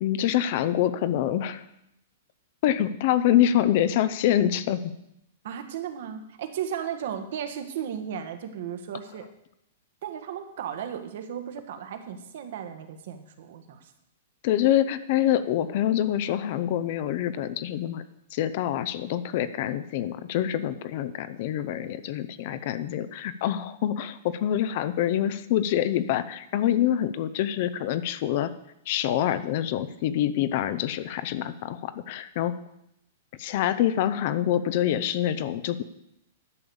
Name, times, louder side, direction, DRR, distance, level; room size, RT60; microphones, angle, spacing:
voice 1, 0.0-1.6 2.6-4.9 14.4-18.0 18.3-28.5 28.9-32.5 33.4-35.8, left 11 dB, 45° left, 13 dB, 0.6 m, -26 dB
voice 2, 5.4-9.3 10.0-13.9, right 8 dB, 60° right, 8 dB, 1.4 m, -35 dB
11.0 x 6.7 x 7.1 m, 0.80 s
supercardioid pair, 165°, 0 cm